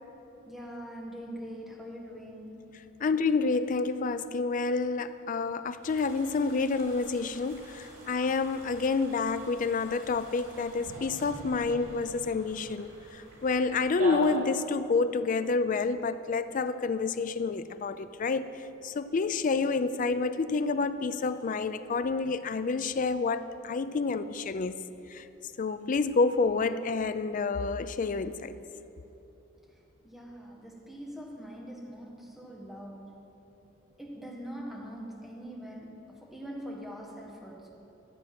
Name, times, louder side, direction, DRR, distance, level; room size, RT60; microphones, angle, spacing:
voice 1, 0.5-2.7 30.0-33.2 34.0-37.7, equal, ahead, -2 dB, 1.4 m, -43 dB
voice 2, 3.0-12.9 13.4-18.5 18.8-24.8 25.1-25.2 25.6-28.5, left 4 dB, 40° left, 12 dB, 0.4 m, -28 dB
sound 1, 5.8-14.2, right 1 dB, 85° right, 2.9 m, -44 dB
13.0 x 7.6 x 5.9 m, 3.0 s
head